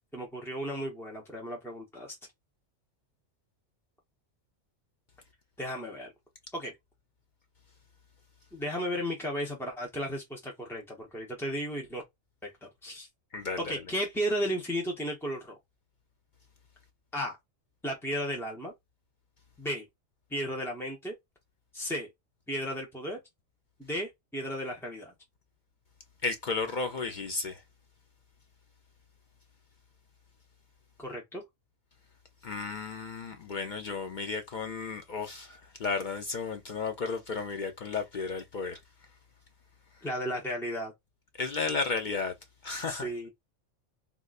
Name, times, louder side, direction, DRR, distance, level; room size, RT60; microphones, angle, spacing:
voice 1, 0.1-2.1 5.6-6.1 6.5-6.7 8.5-12.0 12.4-13.1 13.6-15.6 17.1-17.4 17.8-18.7 19.6-19.8 20.3-21.1 21.7-22.1 22.5-23.2 23.8-25.1 31.0-31.4 40.0-40.9 42.9-43.3, equal, 5° left, 0.4 m, -34 dB
voice 2, 13.3-13.8 26.2-27.6 32.4-38.8 41.4-42.3 42.6-43.1, left 4 dB, 65° left, 0.5 m, -33 dB
3.7 x 2.4 x 2.3 m
omnidirectional pair, 1.4 m